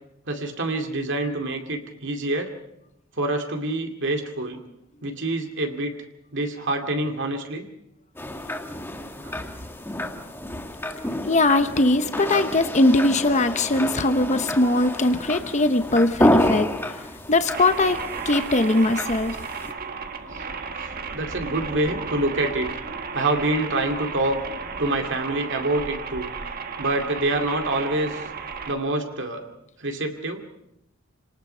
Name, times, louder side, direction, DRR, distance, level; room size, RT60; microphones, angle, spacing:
voice 1, 0.3-2.5 3.2-4.6 5.0-5.9 6.3-7.7 9.2-9.3 20.3-20.4 21.1-22.7 23.1-24.4 24.8-26.3 26.8-28.2 28.7-29.5 29.8-30.4, right 2 dB, 65° right, 3 dB, 2.4 m, -26 dB
sound 1, 8.2-19.7, left 1 dB, 10° left, 1.6 m, -29 dB
voice 2, 11.3-16.7 17.3-19.4, left 2 dB, 35° left, 9 dB, 1.0 m, -20 dB
sound 2, 17.5-28.7, right 5 dB, 45° right, 1.5 m, -34 dB
27.5 x 19.0 x 5.7 m, 0.79 s
head